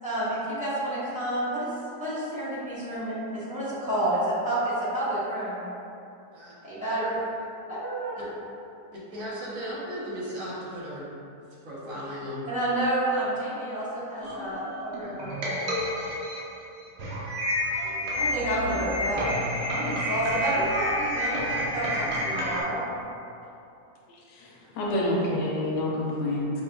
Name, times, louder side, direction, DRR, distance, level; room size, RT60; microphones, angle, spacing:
voice 1, 0.0-1.7 1.9-5.7 6.6-7.1 7.7-8.3 12.5-15.7 18.2-22.9, right 1 dB, 5° right, -12 dB, 0.8 m, -29 dB
voice 2, 9.1-11.1 11.6-12.5, equal, 60° right, -9 dB, 1.1 m, -35 dB
sound 1, 14.2-22.6, equal, 80° right, 1.2 m, -30 dB
voice 3, 24.3-26.5, left 1 dB, 85° left, -3 dB, 1.2 m, -28 dB
5.0 x 2.3 x 2.2 m, 2.7 s
omnidirectional pair, 1.7 m